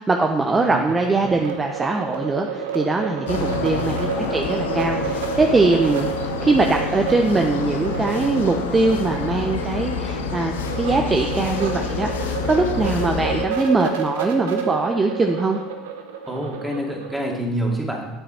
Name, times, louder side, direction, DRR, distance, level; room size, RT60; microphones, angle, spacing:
voice 1, 0.0-6.1 6.4-15.6, right 3 dB, 20° right, 4 dB, 0.7 m, -21 dB
sound 1, 0.6-17.3, right 6 dB, 80° right, 0.9 m, -30 dB
sound 2, 3.3-13.5, left 5 dB, 80° left, 0.7 m, -28 dB
voice 2, 3.3-3.8 16.3-18.1, right 1 dB, ahead, -2 dB, 2.4 m, -27 dB
9.2 x 6.8 x 4.3 m, 1.1 s
hypercardioid pair, 70°, 0 cm